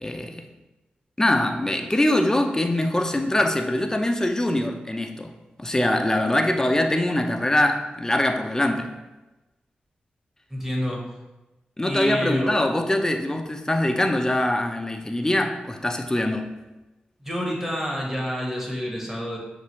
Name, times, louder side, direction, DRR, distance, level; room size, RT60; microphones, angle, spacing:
voice 1, 0.0-0.5 1.2-5.3 5.6-8.9 11.8-16.5, left 1 dB, 20° left, 5 dB, 0.6 m, -23 dB
voice 2, 10.5-11.0 11.9-12.5 17.2-19.4, equal, 10° right, -2 dB, 1.4 m, -28 dB
6.6 x 2.5 x 3.1 m, 1.1 s
cardioid pair, 50°, 3 cm